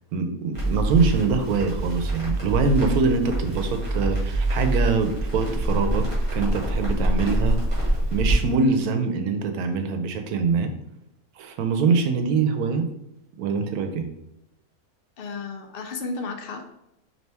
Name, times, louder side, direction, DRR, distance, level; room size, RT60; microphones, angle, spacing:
voice 1, 0.1-6.1 6.3-7.6 8.1-10.7 11.4-12.9 13.4-14.1, right 4 dB, 90° right, 7 dB, 1.1 m, -24 dB
Crackle, 0.5-8.3, right 1 dB, 20° right, 1.6 m, -25 dB
voice 2, 15.2-16.8, left 3 dB, 80° left, 4 dB, 0.5 m, -33 dB
4.2 x 3.0 x 3.3 m, 0.86 s
omnidirectional pair, 1.5 m